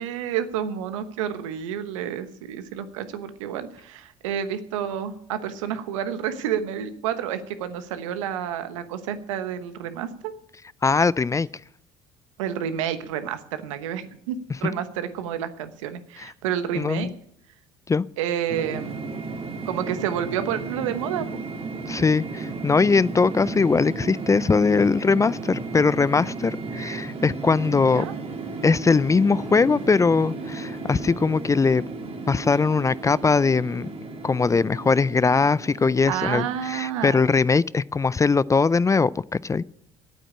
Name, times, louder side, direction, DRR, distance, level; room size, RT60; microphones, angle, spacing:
voice 1, 0.0-10.3 12.4-17.1 18.2-19.0 19.6-21.3 23.2-23.3 27.7-28.1 36.1-37.4, right 9 dB, 90° right, 1.1 m, -30 dB
voice 2, 10.8-11.5 16.8-17.1 17.9-18.1 21.9-28.1 28.6-31.8 32.3-33.9 34.2-39.6, left 4 dB, 20° left, 0.4 m, -21 dB
sound 1, 18.5-37.6, right 3 dB, 40° right, 2.6 m, -34 dB
9.0 x 8.8 x 9.7 m
hypercardioid pair, 70°, 16 cm